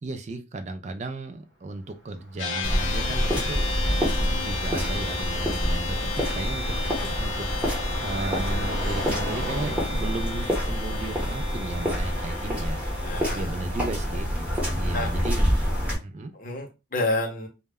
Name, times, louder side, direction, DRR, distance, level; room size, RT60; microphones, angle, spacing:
voice 1, 0.0-12.8 13.1-14.3 14.8-15.5 16.0-16.3, right 2 dB, 35° right, 0.3 m, -35 dB
Car passing by, 1.7-13.8, equal, 65° right, 0.7 m, -40 dB
sound 1, 2.4-13.2, left 4 dB, 80° left, 0.5 m, -34 dB
sound 2, 2.6-15.9, equal, 5° right, 0.7 m, -27 dB
voice 2, 13.0-13.6 14.9-15.1 16.3-17.5, left 2 dB, 45° left, 0.7 m, -29 dB
2.1 x 2.1 x 3.4 m
head